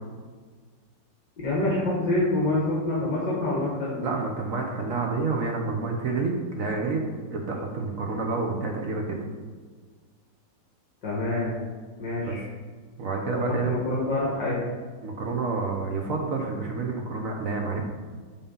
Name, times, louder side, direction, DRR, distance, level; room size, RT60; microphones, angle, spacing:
voice 1, 1.4-4.0 11.0-11.5 12.0-12.4 13.4-14.6, left 2 dB, 65° left, -5 dB, 2.0 m, -26 dB
voice 2, 4.0-7.0 7.3-9.2 12.2-12.4 13.0-13.8 15.0-17.8, right 4 dB, 55° right, 2 dB, 1.0 m, -29 dB
8.5 x 3.8 x 5.4 m, 1.5 s
omnidirectional pair, 2.1 m